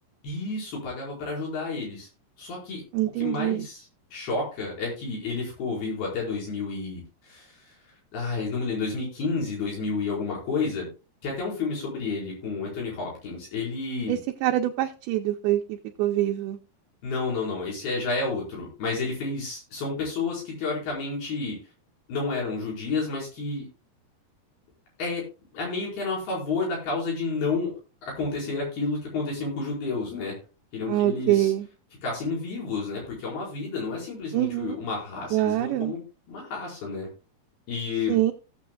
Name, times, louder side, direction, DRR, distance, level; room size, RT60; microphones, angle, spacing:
voice 1, 0.2-2.1 2.4-2.8 3.2-7.6 8.1-10.9 11.2-14.2 17.0-21.6 22.1-23.7 25.0-25.2 25.5-27.7 28.1-30.3 30.7-31.5 32.0-36.0 36.3-37.1 37.7-38.2, left 4 dB, 65° left, 6.7 m, -30 dB
voice 2, 2.9-3.7 14.1-16.6 30.9-31.7 34.3-34.8 35.3-35.9 38.1-38.3, right 14 dB, 80° right, 2.5 m, -25 dB
17.0 x 7.6 x 2.3 m
omnidirectional pair, 4.7 m